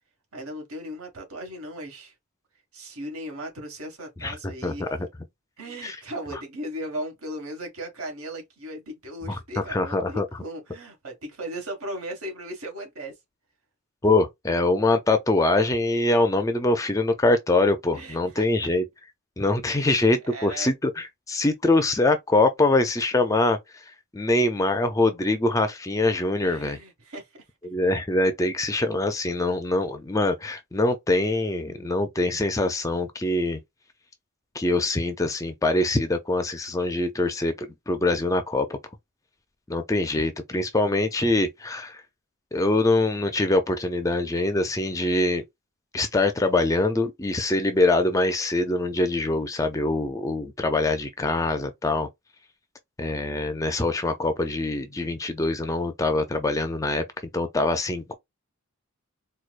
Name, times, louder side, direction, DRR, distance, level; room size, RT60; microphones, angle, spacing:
voice 1, 0.3-2.1 2.7-4.9 5.6-13.1 17.9-18.7 19.7-20.7 26.4-27.4, right 1 dB, 75° right, 1.7 m, -37 dB
voice 2, 4.2-4.9 5.8-6.0 9.3-10.3 14.0-18.8 19.4-26.8 27.6-33.6 34.5-38.8 39.7-42.0 42.5-45.4 45.9-52.1 53.0-57.0 57.3-58.1, left 2 dB, 15° left, 0.4 m, -24 dB
4.5 x 2.3 x 2.4 m
head